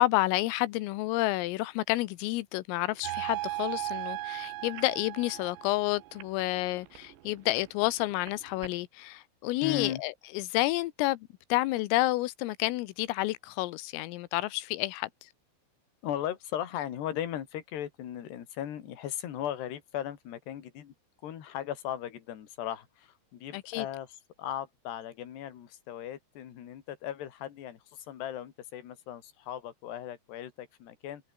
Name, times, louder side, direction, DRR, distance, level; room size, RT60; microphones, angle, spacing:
voice 1, 0.0-11.2 11.5-15.3 23.5-23.9, left 18 dB, 90° left, 3.6 m, -30 dB
sound 1, 2.9-8.8, right 13 dB, 65° right, 3.6 m, -54 dB
sound 2, 3.0-6.2, right 17 dB, 90° right, 3.7 m, -36 dB
voice 2, 9.6-10.0 16.0-20.9 21.2-24.1 24.4-31.3, left 11 dB, 60° left, 4.4 m, -37 dB
omnidirectional pair, 5.9 m